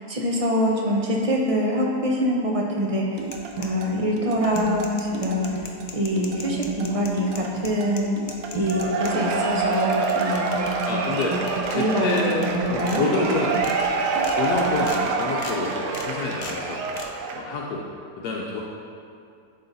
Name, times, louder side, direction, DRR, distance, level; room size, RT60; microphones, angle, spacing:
voice 1, 0.1-3.3 3.6-5.5 5.9-8.2 8.5-10.5 10.9-11.0 11.3-11.4 11.7-12.1 12.4-13.0, equal, 35° right, -2 dB, 0.6 m, -24 dB
sound 1, 3.2-4.0 4.4-9.1 9.5-10.9 11.2-11.7 12.2-12.5 12.9-13.0 13.4-13.7 14.1-14.4 14.8-15.0 15.4-15.6 15.9-16.1 16.4-16.6 16.9-17.1, left 4 dB, 60° left, 0.5 m, -39 dB
sound 2, 3.2-14.9, right 4 dB, 70° right, 1.1 m, -35 dB
Cheering / Applause / Crowd, 8.6-17.5, right 4 dB, 85° right, 1.3 m, -26 dB
voice 2, 10.8-11.3 11.7-13.5 14.3-16.8 17.3-17.8 18.2-18.6, left 3 dB, 80° left, -2 dB, 1.2 m, -27 dB
11.0 x 3.8 x 4.0 m, 2.4 s
omnidirectional pair, 1.7 m